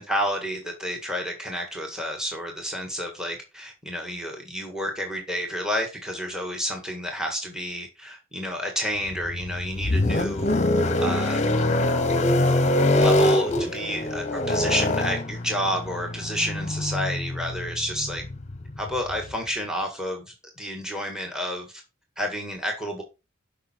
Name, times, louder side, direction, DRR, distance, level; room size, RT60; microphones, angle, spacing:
voice 1, 0.0-10.6 11.0-11.4 12.9-18.3 18.8-21.7 22.2-23.0, equal, 5° right, 3 dB, 1.8 m, -30 dB
sound 1, 9.1-19.3, left 1 dB, 35° left, 0.9 m, -24 dB
12.0 x 5.6 x 4.5 m, 0.28 s
head